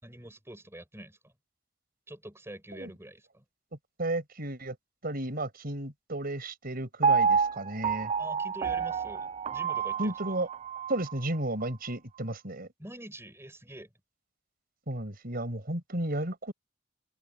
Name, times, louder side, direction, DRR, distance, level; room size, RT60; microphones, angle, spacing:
voice 1, 0.0-1.3 2.1-3.4 8.2-10.2 12.8-13.9, right 1 dB, 15° right, 5.8 m, -46 dB
voice 2, 4.0-4.8 5.0-8.1 10.0-10.5 10.9-12.7 14.9-16.5, right 1 dB, 50° right, 5.2 m, -33 dB
Piano, 7.0-11.1 11.6-11.7, right 6 dB, 35° right, 0.3 m, -28 dB
head